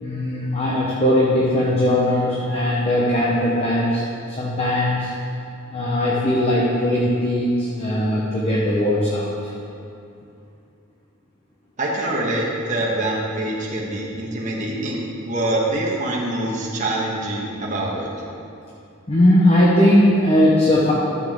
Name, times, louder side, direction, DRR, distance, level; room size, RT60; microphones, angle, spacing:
voice 1, 0.0-5.1 5.7-9.3 19.1-20.9, left 1 dB, 30° left, -5 dB, 0.9 m, -19 dB
voice 2, 11.8-18.1, right 1 dB, 35° right, -4 dB, 1.3 m, -25 dB
13.0 x 7.4 x 3.7 m, 2.6 s
head